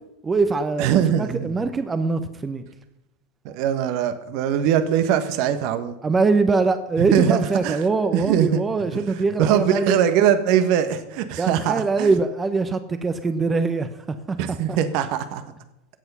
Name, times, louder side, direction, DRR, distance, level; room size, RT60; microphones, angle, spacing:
voice 1, 0.2-2.6 6.0-10.0 11.4-13.9 14.3-14.4 14.7-14.8, right 4 dB, 20° right, 1.0 m, -22 dB
voice 2, 0.8-1.5 3.4-6.0 7.0-7.8 8.1-8.6 8.9-12.1 14.4-15.4, right 9 dB, 55° right, 1.4 m, -22 dB
15.5 x 8.1 x 5.6 m
hypercardioid pair, 90°, 0 cm